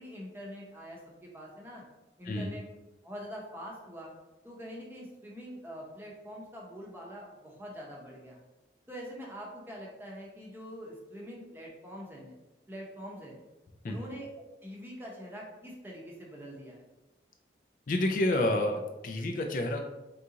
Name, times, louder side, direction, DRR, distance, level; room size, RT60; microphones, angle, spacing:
voice 1, 0.0-1.8 2.2-2.7 3.0-4.1 4.4-8.4 8.9-12.3 12.7-13.3 13.8-16.8, equal, 15° right, -3 dB, 0.7 m, -44 dB
voice 2, 17.9-19.9, left 1 dB, 50° left, 4 dB, 0.4 m, -29 dB
3.8 x 3.6 x 2.8 m, 1.0 s
head